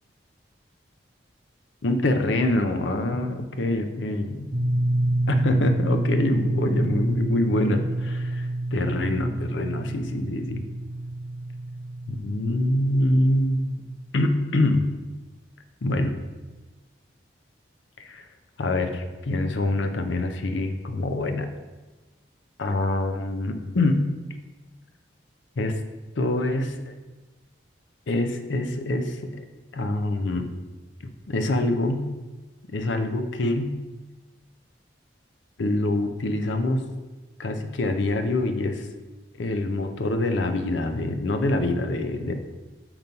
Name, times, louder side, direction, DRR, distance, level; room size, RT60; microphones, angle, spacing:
voice 1, 1.8-4.5 5.3-10.6 12.1-13.6 14.1-14.9 15.8-16.2 18.0-18.3 18.6-21.5 22.6-24.1 25.6-25.8 26.2-26.9 28.1-29.4 29.7-30.5 31.3-32.1 32.7-33.8 35.6-36.8 37.4-38.9 39.4-42.3, left 1 dB, 80° left, 7 dB, 0.6 m, -25 dB
sound 1, 4.5-14.1, right 1 dB, 45° right, 0.5 m, -28 dB
6.6 x 3.0 x 5.2 m, 1.2 s
head